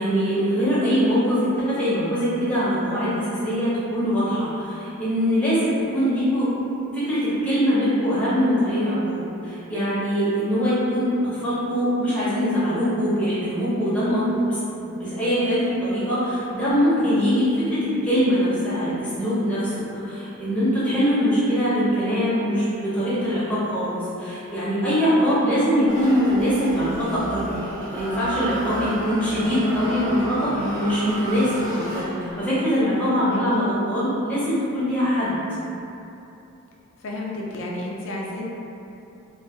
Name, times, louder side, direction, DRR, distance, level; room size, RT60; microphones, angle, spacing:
voice 1, 0.0-6.5 6.9-27.5 27.9-35.4, equal, 5° left, -11 dB, 0.5 m, -22 dB
sound 1, 25.9-32.5, right 1 dB, 40° right, 1.0 m, -33 dB
voice 2, 37.0-38.4, left 1 dB, 60° left, -3 dB, 0.4 m, -31 dB
2.2 x 2.1 x 2.6 m, 2.8 s
head